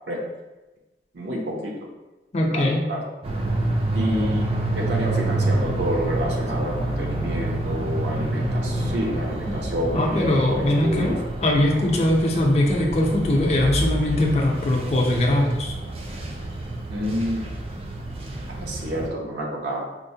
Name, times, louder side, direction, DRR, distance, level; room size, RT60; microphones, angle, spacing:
voice 1, 1.1-1.7 2.5-3.0 3.9-11.2 16.9-17.4 18.5-19.9, equal, 80° right, -1 dB, 0.6 m, -28 dB
voice 2, 2.3-2.8 9.9-15.7, left 1 dB, 35° left, -1 dB, 0.5 m, -21 dB
sound 1, 3.2-19.1, right 2 dB, 35° right, 0.3 m, -28 dB
4.4 x 2.1 x 2.7 m, 1.1 s
head